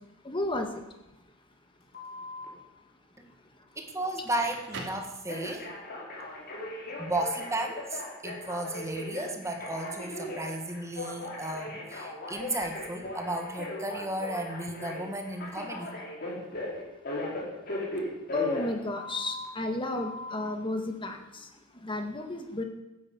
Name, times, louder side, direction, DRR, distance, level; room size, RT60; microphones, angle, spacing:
voice 1, 0.2-0.8 18.3-21.5 21.8-22.6, left 2 dB, 25° left, 5 dB, 1.8 m, -32 dB
Telephone, 1.9-2.5 5.3-19.5 19.9-20.5, left 1 dB, 45° left, 4.9 m, -38 dB
voice 2, 3.8-5.7 7.0-16.0, right 1 dB, 15° right, 4 dB, 1.8 m, -34 dB
Crackle, 4.2-5.8, right 3 dB, 55° right, 3.0 m, -43 dB
14.0 x 10.0 x 8.4 m, 0.96 s
head